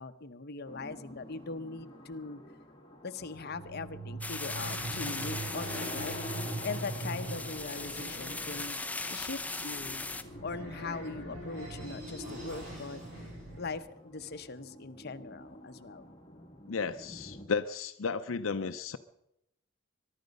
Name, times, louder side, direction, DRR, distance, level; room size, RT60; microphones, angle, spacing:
voice 1, 0.0-2.4 3.0-6.1 6.6-8.8 9.1-10.1 10.4-13.0 13.6-16.1, left 4 dB, 55° left, 8 dB, 0.8 m, -41 dB
sound 1, 0.7-17.5, left 1 dB, 25° left, 1.7 m, -49 dB
sound 2, 3.3-13.8, right 2 dB, 75° right, 7.8 m, -42 dB
sound 3, 4.2-10.2, left 3 dB, 5° left, 0.8 m, -39 dB
voice 2, 16.7-19.0, left 5 dB, 80° left, 10 dB, 0.6 m, -33 dB
22.0 x 11.5 x 5.3 m, 0.82 s
head